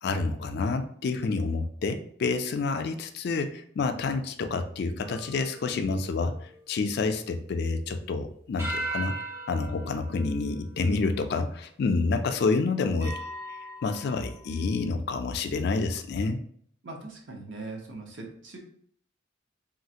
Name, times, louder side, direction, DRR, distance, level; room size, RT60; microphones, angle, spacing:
voice 1, 0.0-6.3 6.7-9.2 9.5-13.2 13.5-16.4, left 3 dB, 55° left, 7 dB, 0.3 m, -28 dB
sound 1, 5.0-8.0 8.6-11.3 12.0-12.1 13.0-14.6, right 2 dB, 15° right, 0.5 m, -39 dB
voice 2, 16.8-18.6, right 3 dB, 60° right, 0 dB, 0.7 m, -40 dB
3.1 x 2.4 x 2.7 m, 0.62 s
head